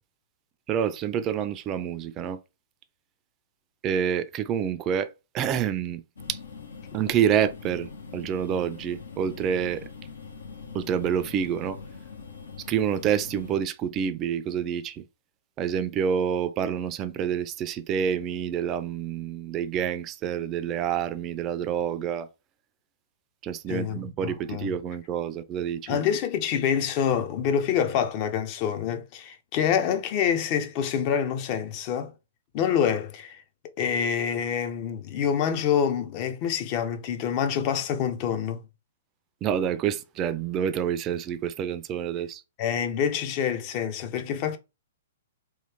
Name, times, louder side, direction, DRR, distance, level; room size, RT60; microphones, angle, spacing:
voice 1, 0.7-2.4 3.8-5.1 5.3-6.0 6.3-6.4 6.9-9.8 10.7-11.8 12.7-15.0 15.6-22.3 23.4-26.0 39.4-42.4, right 8 dB, 30° right, 0.4 m, -28 dB
sound 1, 6.2-13.6, left 5 dB, 80° left, 0.8 m, -42 dB
voice 2, 23.7-24.7 25.9-32.1 32.5-33.4 33.8-38.6 42.6-44.6, left 8 dB, 40° left, 0.6 m, -26 dB
3.1 x 2.2 x 3.4 m
hypercardioid pair, 125°, 0 cm